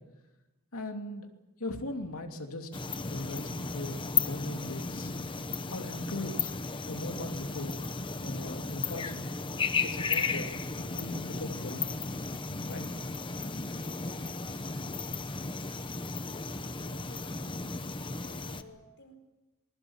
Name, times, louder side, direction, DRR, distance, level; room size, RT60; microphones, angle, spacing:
voice 1, 0.7-1.3 1.6-2.7 3.1-5.1 5.7-6.5 6.9-7.8 8.2-9.2 9.8-12.0 12.5-12.9, left 1 dB, 70° left, 4 dB, 2.8 m, -39 dB
sound 1, 2.7-18.6, left 4 dB, 20° left, 1.0 m, -34 dB
voice 2, 16.6-17.7 18.2-19.2, left 1 dB, 55° left, 5 dB, 5.1 m, -54 dB
26.5 x 21.5 x 7.3 m, 1.0 s
head